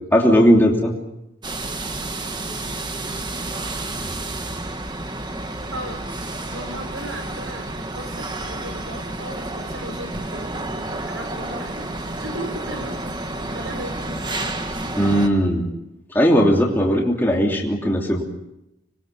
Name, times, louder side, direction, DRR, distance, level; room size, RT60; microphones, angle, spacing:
voice 1, 0.1-0.9 15.0-15.7 16.1-18.2, equal, 10° left, -1 dB, 3.0 m, -17 dB
sound 1, 1.4-15.3, right 2 dB, 20° right, 1.5 m, -30 dB
voice 2, 5.7-6.1 6.5-10.6 10.9-11.9 12.2-13.0 13.5-14.2, right 1 dB, 70° right, 5 dB, 5.9 m, -36 dB
26.0 x 22.0 x 7.0 m, 0.86 s
head